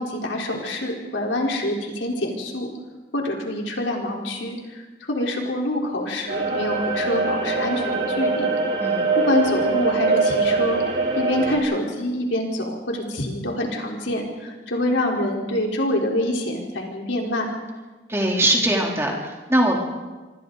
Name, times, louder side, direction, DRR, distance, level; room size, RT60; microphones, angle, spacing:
voice 1, 0.0-2.7 3.1-8.6 9.2-17.6, left 1 dB, 80° left, 0 dB, 4.1 m, -26 dB
sound 1, 6.3-11.6, right 3 dB, 60° right, 4.3 m, -23 dB
voice 2, 18.1-19.1 19.5-19.8, right 1 dB, 15° right, -1 dB, 3.4 m, -20 dB
26.5 x 25.0 x 4.0 m, 1.2 s
head